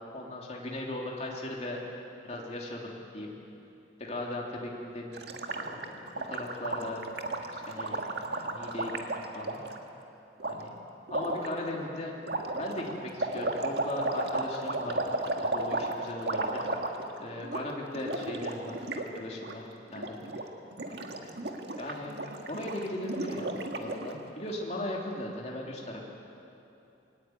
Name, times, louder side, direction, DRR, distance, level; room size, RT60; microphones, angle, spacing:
voice 1, 0.1-1.8 2.2-3.3 4.0-7.0 7.7-9.0 9.3-9.6 10.4-10.7 11.1-12.1 12.5-15.0 15.4-16.7 17.2-18.8 19.1-19.6 19.9-20.4 20.9-21.3 21.8-22.2 22.5-26.0, left 1 dB, 35° left, -2 dB, 3.1 m, -38 dB
Gurgling, 5.1-9.8 10.4-10.5 11.1-11.5 12.2-17.2 17.4-17.6 17.9-19.1 19.3-19.5 19.9-20.4 20.7-24.1, right 2 dB, 60° right, 1.8 m, -34 dB
22.0 x 18.5 x 9.3 m, 2.8 s
head